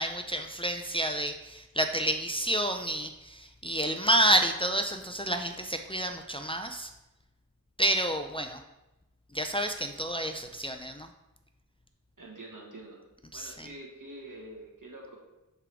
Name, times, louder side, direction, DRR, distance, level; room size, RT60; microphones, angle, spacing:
voice 1, 0.0-6.9 7.8-8.6 9.3-11.1 13.3-13.7, right 1 dB, 15° left, 4 dB, 0.4 m, -29 dB
voice 2, 12.2-13.0 13.3-15.2, right 1 dB, 70° right, -2 dB, 1.5 m, -46 dB
7.9 x 3.7 x 3.4 m, 0.98 s
wide cardioid pair, 40°, 33 cm